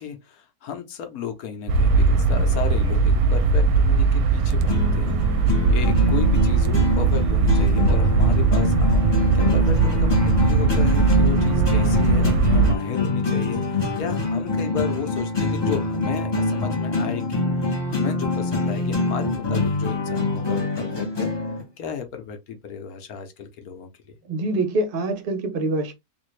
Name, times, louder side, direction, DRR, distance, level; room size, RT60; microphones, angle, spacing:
voice 1, 0.0-21.3 21.8-24.2, left 8 dB, 65° left, 1.2 m, -34 dB
sound 1, 1.7-12.8, right 4 dB, 70° right, 1.0 m, -19 dB
sound 2, 4.6-21.6, left 3 dB, 25° left, 0.6 m, -25 dB
voice 2, 24.3-25.9, right 2 dB, 50° right, 0.7 m, -25 dB
3.5 x 2.5 x 3.1 m
omnidirectional pair, 1.8 m